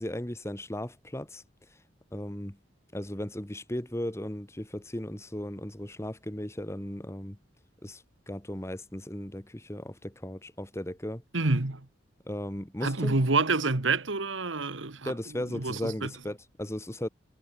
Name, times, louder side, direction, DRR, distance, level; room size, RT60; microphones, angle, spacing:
voice 1, 0.0-1.4 2.1-2.6 2.9-7.4 7.8-11.2 12.3-13.2 15.0-17.1, left 1 dB, 15° left, 1.7 m, -36 dB
voice 2, 11.3-11.8 12.8-15.1 15.5-16.1, right 3 dB, 85° right, 1.7 m, -27 dB
head